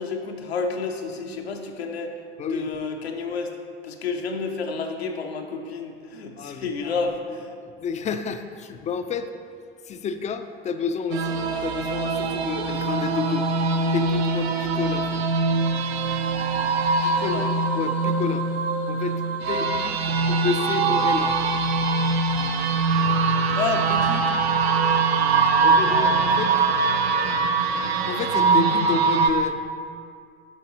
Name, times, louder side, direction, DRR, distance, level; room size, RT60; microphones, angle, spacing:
voice 1, 0.0-2.1 2.4-3.5 3.8-7.5 17.0-17.5 20.2-20.3 23.6-24.3, left 4 dB, 75° left, 3 dB, 0.8 m, -30 dB
voice 2, 6.4-6.9 7.8-9.3 9.9-13.5 13.9-15.3 17.8-18.4 18.9-19.2 19.5-21.4 25.6-26.5 27.8-29.6, left 5 dB, 25° left, 9 dB, 0.4 m, -30 dB
sound 1, 11.1-29.3, right 4 dB, 75° right, 0.6 m, -22 dB
11.0 x 5.2 x 2.9 m, 2.2 s
figure-of-eight pair, 70°, 31 cm